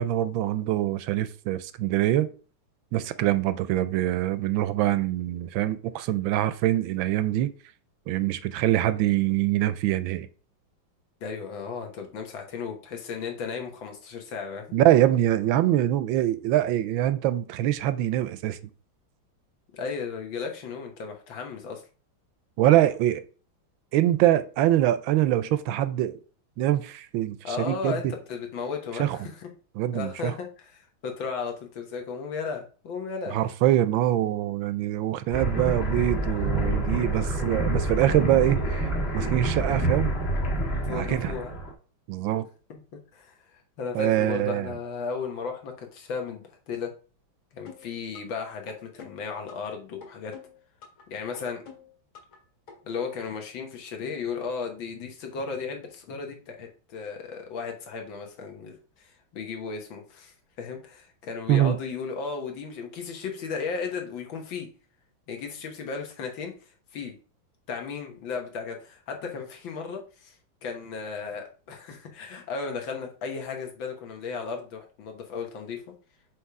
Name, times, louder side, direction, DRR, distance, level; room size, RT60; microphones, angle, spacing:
voice 1, 0.0-2.3 2.9-7.5 8.1-10.3 14.7-18.6 22.6-23.2 23.9-26.2 26.6-28.0 29.0-29.2 29.8-30.3 33.3-38.8 39.1-40.1 40.9-41.3 42.1-42.5 43.9-44.7 61.5-61.8, right 13 dB, 80° right, 1.3 m, -24 dB
voice 2, 11.2-14.7 19.7-21.8 27.4-29.5 29.9-33.4 40.8-41.5 42.7-46.9 47.5-50.3 51.1-51.6 52.8-64.7 65.3-67.2 67.7-70.4 70.6-75.8, left 5 dB, 75° left, 2.0 m, -35 dB
sound 1, 35.3-41.7, right 2 dB, 30° left, 1.8 m, -27 dB
sound 2, 47.7-48.4 48.7-49.7 50.0-51.0 51.3-52.4 52.7-52.8, left 6 dB, 90° left, 2.8 m, -47 dB
7.2 x 3.3 x 4.7 m
omnidirectional pair, 2.2 m